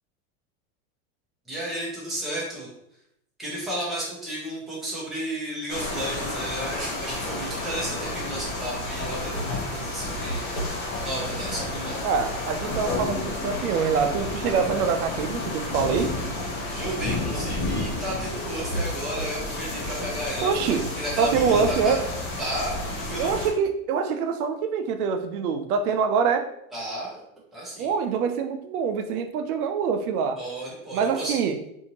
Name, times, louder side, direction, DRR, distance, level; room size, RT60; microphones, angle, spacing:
voice 1, 1.5-2.7 3.4-10.8 11.0-12.0 16.7-21.9 22.4-23.4 26.7-27.2 27.5-27.9 30.4-31.4, right 1 dB, ahead, -6 dB, 0.5 m, -33 dB
sound 1, 5.7-23.5, left 2 dB, 50° left, 1.0 m, -31 dB
sound 2, 6.8-6.9 7.9-8.0 8.5-13.6 14.2-15.4 15.8-21.9, equal, 75° left, 1.3 m, -39 dB
voice 2, 12.0-16.1 20.4-20.8 21.2-22.0 23.2-26.5 27.8-30.4 30.9-31.6, right 6 dB, 80° right, 7 dB, 0.5 m, -25 dB
2.7 x 2.5 x 2.8 m, 0.77 s
supercardioid pair, 145°, 43 cm